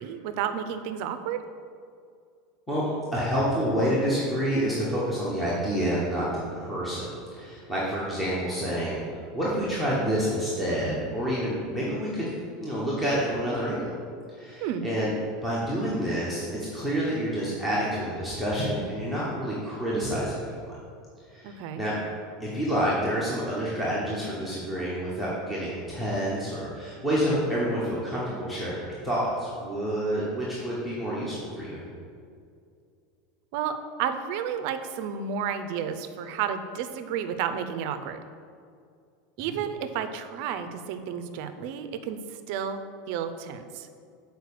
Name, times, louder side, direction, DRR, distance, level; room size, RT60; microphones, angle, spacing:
voice 1, 0.0-1.4 14.6-14.8 21.4-21.8 33.5-38.2 39.4-43.9, right 8 dB, 50° right, 9 dB, 0.5 m, -32 dB
voice 2, 3.1-13.9 14.3-15.1 15.4-20.6 21.3-22.0 22.4-31.8 39.4-39.5, equal, 5° left, -7 dB, 1.1 m, -28 dB
6.5 x 4.6 x 6.8 m, 2.3 s
supercardioid pair, 175°, 0 cm